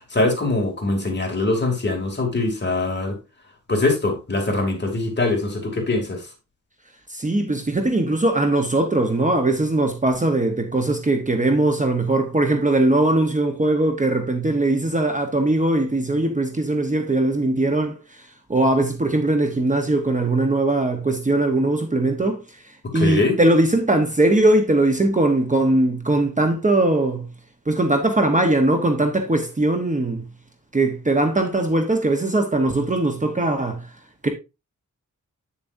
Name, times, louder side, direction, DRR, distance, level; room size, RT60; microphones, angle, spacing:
voice 1, 0.0-3.1 3.7-6.2 22.9-23.4, left 2 dB, 35° left, 2.6 m, -22 dB
voice 2, 7.1-22.6 22.9-27.3 27.7-30.3 30.7-33.9 34.2-34.3, right 2 dB, 25° right, 1.0 m, -20 dB
8.4 x 7.2 x 2.6 m
wide cardioid pair, 115°, 32 cm